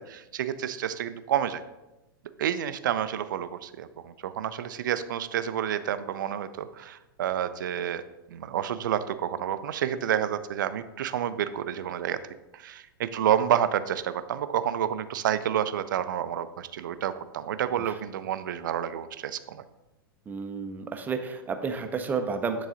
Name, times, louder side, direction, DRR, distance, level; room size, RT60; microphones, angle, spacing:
voice 1, 0.0-1.6 2.4-8.0 8.3-12.2 12.5-19.6, right 10 dB, 55° right, 13 dB, 0.4 m, -29 dB
voice 2, 20.3-22.7, right 5 dB, 15° right, 7 dB, 0.6 m, -31 dB
9.5 x 4.0 x 3.8 m, 0.99 s
figure-of-eight pair, 100°, 12 cm